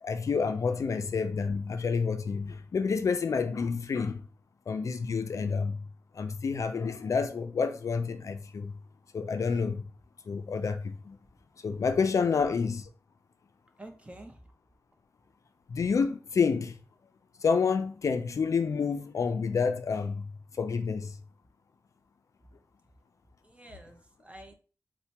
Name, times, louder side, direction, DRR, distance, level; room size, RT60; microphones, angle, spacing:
voice 1, 0.0-4.3 4.7-5.9 6.1-8.8 9.1-9.8 10.3-11.2 11.6-12.9 15.7-16.8 17.4-21.2, left 5 dB, 65° left, 0.4 m, -29 dB
voice 2, 13.8-14.4 23.4-24.5, right 1 dB, 20° right, 0.7 m, -48 dB
4.2 x 2.2 x 2.8 m
wide cardioid pair, 70°, 6 cm